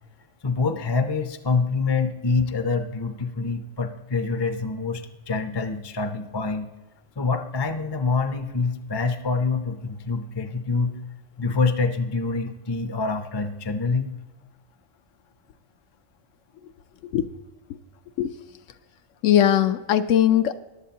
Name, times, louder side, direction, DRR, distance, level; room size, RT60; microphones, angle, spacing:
voice 1, 0.4-6.7 7.2-10.9 11.4-14.1, left 4 dB, 35° left, 8 dB, 0.4 m, -26 dB
voice 2, 19.2-20.6, left 11 dB, 85° left, 11 dB, 1.0 m, -19 dB
15.0 x 11.0 x 2.8 m, 1.2 s
omnidirectional pair, 1.3 m